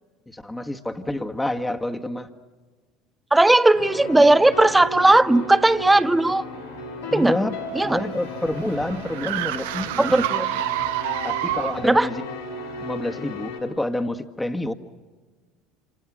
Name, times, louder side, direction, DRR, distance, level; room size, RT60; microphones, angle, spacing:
voice 1, 0.3-2.3 7.1-7.6 7.8-10.1 11.2-12.2 12.8-14.7, left 1 dB, 10° left, 6 dB, 1.8 m, -28 dB
voice 2, 3.3-6.4 7.1-7.3 7.8-8.0 10.0-10.5 11.8-12.1, right 2 dB, 10° right, 12 dB, 0.8 m, -17 dB
sound 1, 3.7-13.6, left 1 dB, 90° left, 6.1 m, -35 dB
sound 2, 7.5-12.0, right 14 dB, 75° right, 0.7 m, -29 dB
28.5 x 27.5 x 6.3 m, 1.4 s
hypercardioid pair, 75°, 0 cm